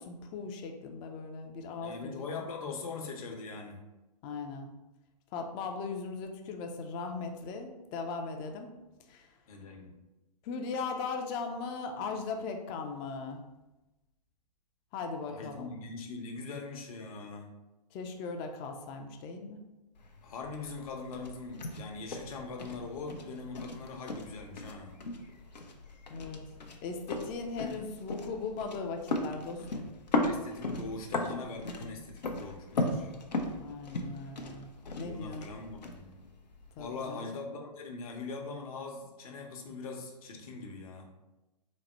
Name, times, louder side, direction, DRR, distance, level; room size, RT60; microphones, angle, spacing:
voice 1, 0.0-2.2 4.2-4.7 5.3-8.7 9.1-9.3 10.4-13.4 14.9-15.7 17.9-19.6 26.1-26.4 26.8-29.9 33.6-34.7 34.9-35.5 36.8-37.3, left 4 dB, 25° left, 4 dB, 0.4 m, -38 dB
voice 2, 1.8-3.8 9.5-9.9 15.3-17.5 20.2-24.9 27.6-27.7 30.2-33.1 35.0-36.2 36.8-41.1, left 4 dB, 60° left, 2 dB, 0.8 m, -42 dB
sound 1, 19.9-36.9, left 2 dB, 90° left, 0.6 m, -37 dB
4.1 x 2.1 x 4.2 m, 1.0 s
hypercardioid pair, 125°, 21 cm